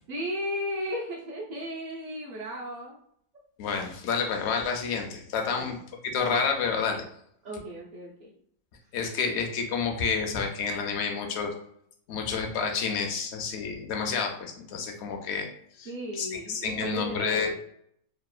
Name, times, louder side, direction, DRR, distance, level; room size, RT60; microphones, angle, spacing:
voice 1, 0.1-3.0 5.5-5.8 7.4-8.3 15.8-17.5, equal, 60° right, -6 dB, 0.4 m, -35 dB
voice 2, 3.6-5.8 6.1-7.0 8.9-11.5 12.1-15.5 15.8-17.5, left 5 dB, 65° left, 3 dB, 0.6 m, -29 dB
2.8 x 2.1 x 2.3 m, 0.70 s
omnidirectional pair, 1.5 m